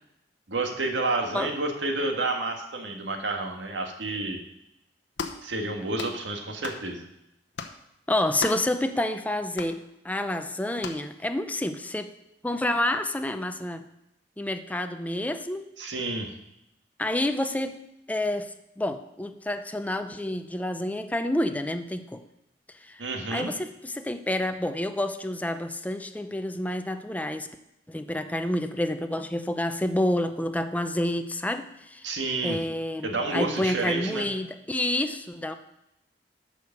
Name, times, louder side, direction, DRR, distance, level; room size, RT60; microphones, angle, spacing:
voice 1, 0.5-4.4 5.4-7.1 15.8-16.3 23.0-23.5 32.0-32.6 33.0-34.3, right 2 dB, 85° right, 3 dB, 1.7 m, -29 dB
sound 1, 5.2-5.4 6.0-6.2 6.6-6.8 7.5-7.8 8.4-8.7 9.5-9.7 10.8-11.0, left 5 dB, 75° left, 0.9 m, -35 dB
voice 2, 8.1-12.1 12.4-13.9 14.4-15.7 17.0-17.8 18.1-22.2 22.8-27.5 27.9-32.0 32.4-35.5, left 1 dB, 10° left, 8 dB, 0.5 m, -29 dB
11.5 x 5.1 x 6.7 m, 0.84 s
head